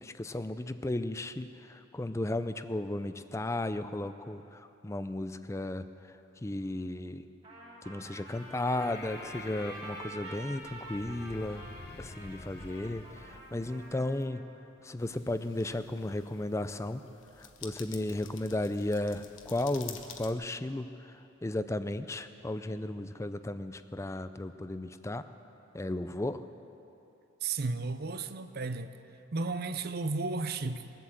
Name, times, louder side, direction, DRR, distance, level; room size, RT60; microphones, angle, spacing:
voice 1, 0.0-7.3 7.8-11.6 12.0-14.4 14.8-17.0 17.4-25.3 25.7-26.4, left 1 dB, 15° left, 0.4 m, -35 dB
Trumpet, 7.4-14.5, right 2 dB, 30° right, 2.8 m, -47 dB
Breathing, 8.3-14.3, left 3 dB, 50° left, 0.8 m, -50 dB
sound 1, 15.0-20.3, left 8 dB, 70° left, 1.1 m, -50 dB
voice 2, 27.4-28.9 29.3-30.9, right 3 dB, 50° right, 0.6 m, -33 dB
21.0 x 7.9 x 7.5 m
head